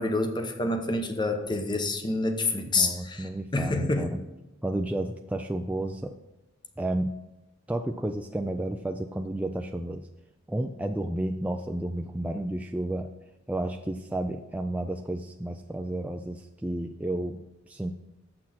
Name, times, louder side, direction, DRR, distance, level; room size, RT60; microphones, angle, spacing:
voice 1, 0.0-4.1, left 2 dB, 20° left, 6 dB, 0.8 m, -28 dB
voice 2, 2.8-4.1 4.6-6.2 6.8-7.2 7.7-10.1 10.5-13.1 13.5-17.9, right 1 dB, 5° right, 4 dB, 0.3 m, -32 dB
7.6 x 6.1 x 5.8 m, 1.0 s
head